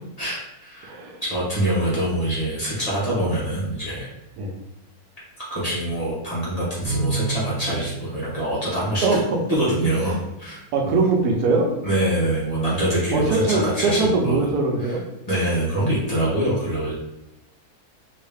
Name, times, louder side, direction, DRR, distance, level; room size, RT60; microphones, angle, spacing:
voice 1, 0.2-0.9 1.2-4.1 5.5-9.2 9.5-10.1 10.4-11.0 11.8-14.5 14.8-15.0 15.3-16.9, right 1 dB, 30° left, -8 dB, 1.0 m, -24 dB
voice 2, 0.8-1.2 4.4-4.5 9.0-9.2 10.0-10.2 10.7-11.7 13.1-15.0, right 3 dB, 85° right, 1 dB, 1.2 m, -21 dB
Bowed string instrument, 6.8-9.5, right 3 dB, 65° right, 1.0 m, -31 dB
3.1 x 2.7 x 3.4 m, 0.88 s
omnidirectional pair, 1.6 m